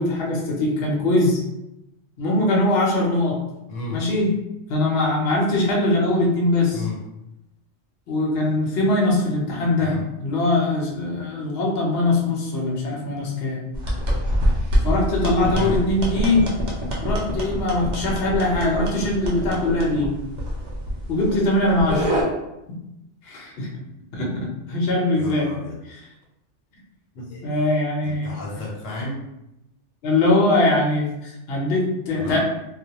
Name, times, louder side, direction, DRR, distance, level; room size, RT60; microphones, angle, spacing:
voice 1, 0.0-1.4 2.2-3.4 3.9-4.3 4.7-6.8 8.1-13.6 14.8-16.5 17.0-20.1 21.1-22.1 22.7-22.8 23.2-23.7 24.1-25.5 25.9-26.0 27.2-28.4 30.0-32.4, left 2 dB, 60° left, -2 dB, 0.8 m, -22 dB
voice 2, 3.7-4.0 6.7-7.0 9.8-10.0 15.5-15.8 25.1-25.8 27.3-27.4 28.0-29.2 32.1-32.4, left 3 dB, 80° left, -2 dB, 1.0 m, -32 dB
sound 1, 13.7-22.2, equal, 50° right, 0.6 m, -25 dB
2.3 x 2.1 x 2.8 m, 0.89 s
omnidirectional pair, 1.3 m